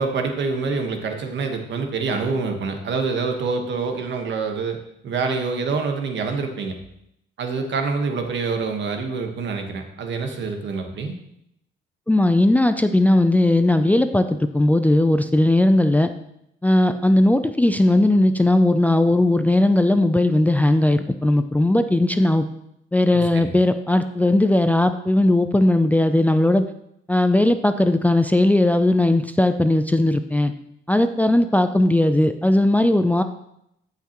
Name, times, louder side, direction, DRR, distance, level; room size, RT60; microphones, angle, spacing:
voice 1, 0.0-4.8 5.0-6.8 7.4-11.1 23.1-23.6, right 4 dB, 65° right, 4 dB, 1.4 m, -26 dB
voice 2, 12.1-14.3 14.5-16.1 16.6-22.4 22.9-26.7 27.1-30.5 30.9-33.2, left 1 dB, 10° left, 9 dB, 0.4 m, -18 dB
14.0 x 5.8 x 3.0 m, 0.79 s
cardioid pair, 90°, 20 cm